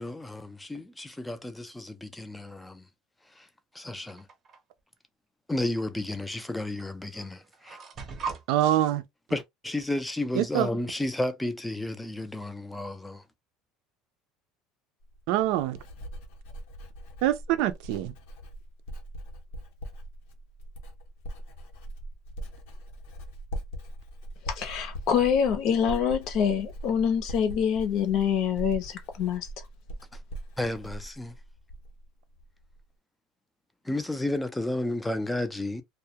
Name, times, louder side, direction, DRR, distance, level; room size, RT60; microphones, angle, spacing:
voice 1, 0.0-2.8 3.4-3.5 3.7-4.3 5.5-7.8 9.3-13.2 30.6-31.3 33.9-35.8, left 1 dB, 5° left, 0.4 m, -32 dB
sound 1, 4.1-4.6 5.8-5.9 6.8-6.9 7.2-8.4, right 5 dB, 30° right, 0.7 m, -38 dB
voice 2, 8.5-9.0 10.3-10.7 15.3-15.8 17.2-18.1, right 13 dB, 70° right, 0.4 m, -25 dB
Writing, 15.0-32.1 32.4-32.8, right 1 dB, 85° left, 0.8 m, -41 dB
voice 3, 24.4-29.5, left 8 dB, 55° left, 0.6 m, -26 dB
2.3 x 2.1 x 2.8 m
cardioid pair, 140°, 0 cm